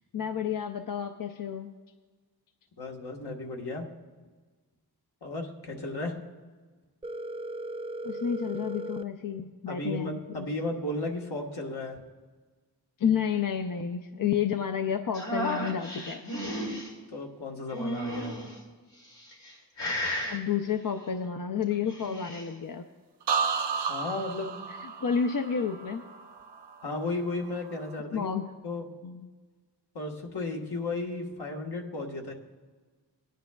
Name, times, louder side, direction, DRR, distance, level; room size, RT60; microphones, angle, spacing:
voice 1, 0.1-1.7 8.0-10.5 13.0-16.2 20.3-22.8 24.8-26.0 28.1-28.4 29.0-29.3, left 7 dB, 55° left, 6 dB, 0.5 m, -30 dB
voice 2, 2.8-3.9 5.2-6.1 9.7-12.0 17.1-18.4 23.9-24.5 26.8-28.3 28.6-28.8 29.9-32.3, left 2 dB, 70° left, -1 dB, 1.4 m, -34 dB
Telephone, 7.0-9.0, right 1 dB, 15° right, 0.3 m, -37 dB
sound 1, 15.1-16.9 17.7-18.5 19.2-19.5 19.8-20.4 21.7-22.5, equal, 90° left, 2.4 m, -33 dB
sound 2, 23.3-27.1 27.4-27.9, right 6 dB, 85° right, 0.6 m, -33 dB
18.0 x 10.0 x 2.3 m, 1.4 s
wide cardioid pair, 75°, 40 cm